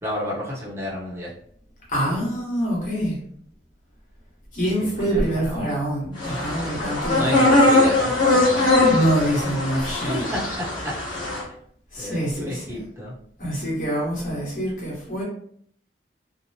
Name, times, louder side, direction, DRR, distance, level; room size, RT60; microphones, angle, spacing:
voice 1, 0.0-1.3 4.8-5.8 7.1-9.2 10.1-10.2 12.0-13.1, left 1 dB, 15° right, -6 dB, 0.8 m, -31 dB
voice 2, 1.9-3.2 4.5-7.2 8.8-10.4 11.9-12.8 13.4-15.2, right 1 dB, 45° left, -5 dB, 1.2 m, -25 dB
sound 1, 6.2-11.4, left 2 dB, 25° left, 1.1 m, -21 dB
2.9 x 2.0 x 2.7 m, 0.63 s
head